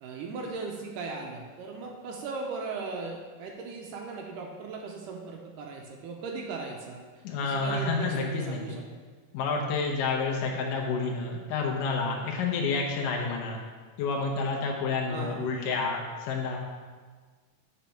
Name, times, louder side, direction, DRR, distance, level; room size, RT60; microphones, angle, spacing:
voice 1, 0.0-7.0 7.4-8.8 15.1-15.5, right 4 dB, 75° right, 1 dB, 2.1 m, -38 dB
voice 2, 7.2-8.6 9.3-13.6 14.0-16.6, left 4 dB, 75° left, -1 dB, 2.4 m, -29 dB
7.3 x 5.2 x 5.7 m, 1.5 s
omnidirectional pair, 4.1 m